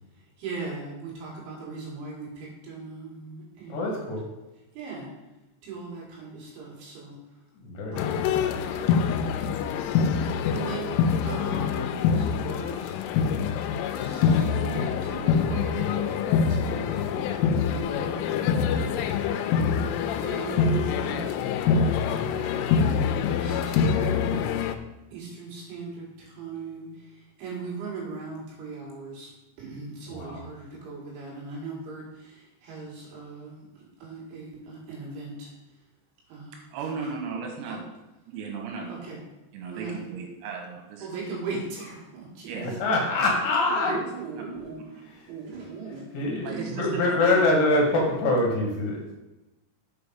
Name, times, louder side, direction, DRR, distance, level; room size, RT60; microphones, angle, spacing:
voice 1, 0.4-4.1 4.7-5.1 5.6-7.2 7.9-8.3 8.8-9.2 10.5-13.0 13.8-17.3 17.7-18.5 20.2-21.2 21.9-22.9 23.4-24.4 25.1-29.3 29.6-35.5 36.3-36.6 37.0-37.1 37.7-37.8 38.9-39.2 39.7-40.1 41.0-42.5 43.6-44.8 45.3-46.2 46.5-46.7, right 4 dB, 70° right, -4 dB, 4.4 m, -39 dB
voice 2, 3.7-4.3 7.7-8.2 30.1-30.4 42.8-43.9 46.1-46.5 46.8-49.0, left 2 dB, 65° left, -1 dB, 2.2 m, -24 dB
sound 1, 8.0-24.8, left 6 dB, 85° left, 2.9 m, -25 dB
voice 3, 36.7-37.8 38.3-39.1 39.5-41.1 42.4-42.9 43.8-44.0 44.4-44.5 46.4-47.4, right 5 dB, 85° right, 1 dB, 4.2 m, -35 dB
8.0 x 5.0 x 5.3 m, 1.0 s
omnidirectional pair, 5.9 m